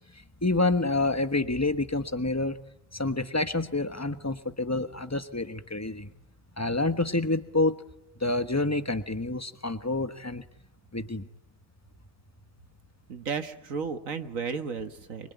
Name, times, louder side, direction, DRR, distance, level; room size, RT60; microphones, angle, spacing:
voice 1, 0.1-2.6 2.9-6.1 6.6-7.8 8.2-10.4 10.9-11.3, left 2 dB, 10° left, 10 dB, 1.2 m, -28 dB
voice 2, 13.1-15.3, right 5 dB, 75° right, 8 dB, 1.9 m, -33 dB
25.5 x 24.5 x 9.4 m, 0.81 s
omnidirectional pair, 1.4 m